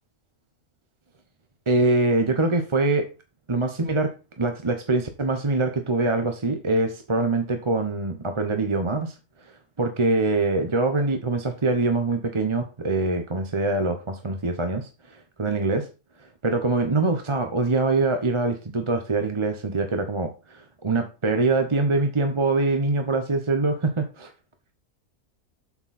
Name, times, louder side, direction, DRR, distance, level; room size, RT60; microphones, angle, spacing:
voice 1, 1.7-3.1 3.5-9.1 9.8-15.9 16.4-24.3, right 3 dB, 25° right, 6 dB, 0.7 m, -24 dB
7.5 x 7.3 x 4.2 m, 0.31 s
omnidirectional pair, 1.6 m